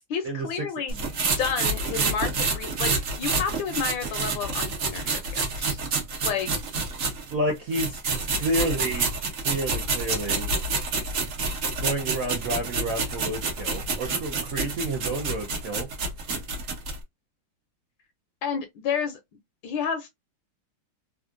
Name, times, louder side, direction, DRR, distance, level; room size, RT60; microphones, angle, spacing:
voice 1, 0.1-1.0 1.4-5.8 6.2-6.5 18.4-19.2 19.6-20.1, left 7 dB, 75° left, 1.2 m, -30 dB
sound 1, 0.9-7.3 7.7-17.0, right 3 dB, 55° right, 0.9 m, -28 dB
voice 2, 7.3-9.1 9.4-10.5 11.8-15.9, right 1 dB, 80° right, 0.7 m, -30 dB
3.5 x 2.3 x 2.5 m
omnidirectional pair, 2.3 m